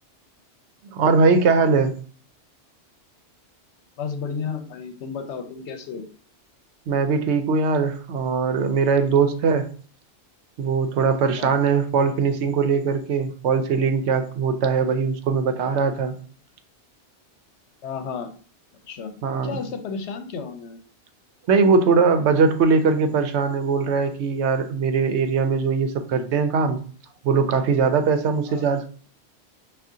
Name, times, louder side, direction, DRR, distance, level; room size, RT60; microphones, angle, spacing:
voice 1, 0.9-1.9 6.9-9.7 10.6-16.1 19.2-19.6 21.5-26.8 27.2-28.9, right 5 dB, 80° right, 8 dB, 0.9 m, -21 dB
voice 2, 4.0-6.1 11.4-11.6 17.8-18.3 18.9-19.1 19.4-20.8 28.5-28.7, left 6 dB, 80° left, 7 dB, 0.9 m, -32 dB
6.0 x 2.4 x 2.7 m, 0.42 s
omnidirectional pair, 1.2 m